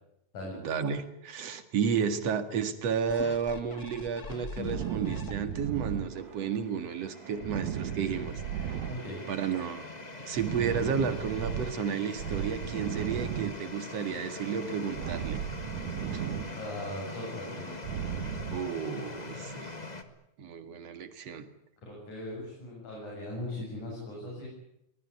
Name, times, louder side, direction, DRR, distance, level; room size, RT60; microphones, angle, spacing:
voice 1, 0.5-8.7 9.3-9.8 10.2-15.4 16.1-16.2 18.5-19.8 20.4-21.5, right 6 dB, 60° right, 10 dB, 3.0 m, -32 dB
sound 1, 3.1-5.8 6.3-6.4, left 4 dB, 35° left, 1.8 m, -42 dB
sound 2, 4.6-6.7 7.0-9.6 9.8-11.8 12.2-14.1 14.4-16.9 17.2-18.6, right 9 dB, 80° right, 2.6 m, -36 dB
sound 3, 5.4-20.0, left 3 dB, 20° left, 1.5 m, -43 dB
voice 2, 16.5-17.8 21.8-24.5, left 1 dB, 90° left, -3 dB, 9.3 m, -39 dB
23.5 x 20.0 x 9.8 m, 0.79 s
omnidirectional pair, 3.4 m